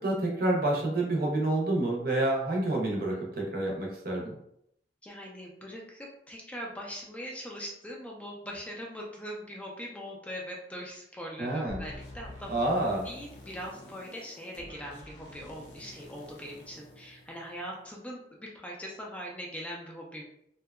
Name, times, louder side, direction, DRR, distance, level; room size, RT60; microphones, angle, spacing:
voice 1, 0.0-4.3 11.4-11.8 12.5-13.1, right 1 dB, 55° right, -1 dB, 0.6 m, -28 dB
voice 2, 5.0-12.5 13.0-20.2, equal, 10° left, -2 dB, 0.3 m, -41 dB
sound 1, 11.7-17.8, left 1 dB, 90° left, 0.6 m, -48 dB
2.7 x 2.2 x 2.2 m, 0.74 s
head